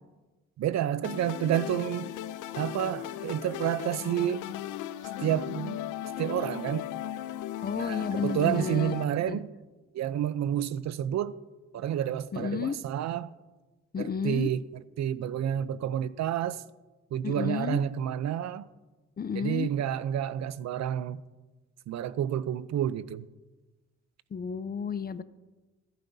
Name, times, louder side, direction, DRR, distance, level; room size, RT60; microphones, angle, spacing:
voice 1, 0.6-2.1 2.6-4.5 5.2-5.8 6.2-6.9 7.8-9.5 9.9-11.3 11.7-13.3 14.0-14.6 15.0-16.6 17.1-18.7 19.3-21.2 21.9-23.3, right 10 dB, 65° right, 0.6 m, -29 dB
sound 1, 1.0-9.0, left 13 dB, 85° left, 0.6 m, -37 dB
voice 2, 7.6-8.9 9.3-9.4 12.3-12.8 13.9-14.5 17.2-17.8 19.2-19.7 24.3-25.2, left 6 dB, 30° left, 0.6 m, -31 dB
24.5 x 9.3 x 2.7 m
cardioid pair, 90°, 30 cm